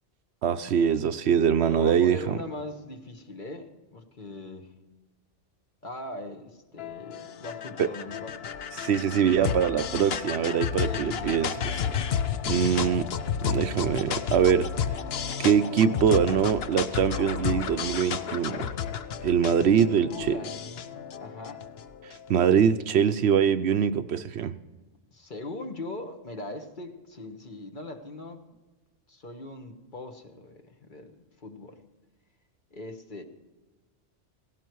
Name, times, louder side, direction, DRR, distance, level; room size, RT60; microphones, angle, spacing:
voice 1, 0.4-2.4 7.8-7.9 8.8-11.5 12.5-13.1 13.4-14.7 15.4-18.7 19.2-20.4 22.0-24.5, right 8 dB, 65° right, 11 dB, 0.9 m, -23 dB
voice 2, 1.7-4.7 5.8-8.5 10.8-12.0 19.5-21.7 25.1-28.4 29.1-31.8 32.7-33.2, left 2 dB, 45° left, 5 dB, 1.5 m, -40 dB
sound 1, 6.8-22.3, left 7 dB, 60° left, 0.9 m, -32 dB
17.0 x 17.0 x 4.6 m, 1.2 s
omnidirectional pair, 1.2 m